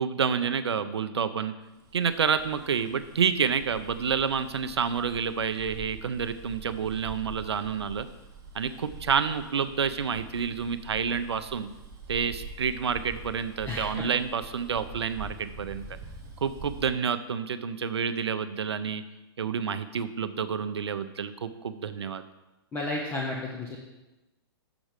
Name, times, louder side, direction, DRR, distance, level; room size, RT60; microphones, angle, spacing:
voice 1, 0.0-1.5 1.9-8.1 8.5-11.7 12.1-15.8 16.4-19.0 19.4-22.2, right 6 dB, 90° right, 11 dB, 0.6 m, -29 dB
Bus, 1.8-16.9, right 3 dB, 25° right, 1.1 m, -45 dB
voice 2, 13.6-14.0 22.7-23.8, left 2 dB, 15° left, -2 dB, 1.0 m, -32 dB
7.4 x 6.1 x 5.1 m, 1.0 s
hypercardioid pair, 130°, 14 cm